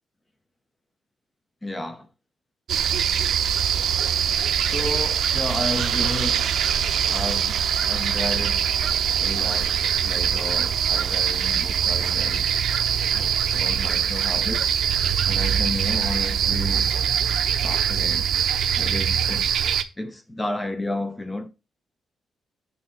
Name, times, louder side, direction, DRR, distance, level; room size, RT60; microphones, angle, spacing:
voice 1, 1.6-2.1 4.7-6.5 7.1-8.7 9.2-12.5 13.1-14.7 15.3-16.9 17.6-18.3 18.8-21.5, left 1 dB, 10° left, 0.5 m, -32 dB
sound 1, 2.7-19.8, right 8 dB, 60° right, 0.6 m, -23 dB
6.4 x 3.4 x 5.9 m
wide cardioid pair, 170°, 0 cm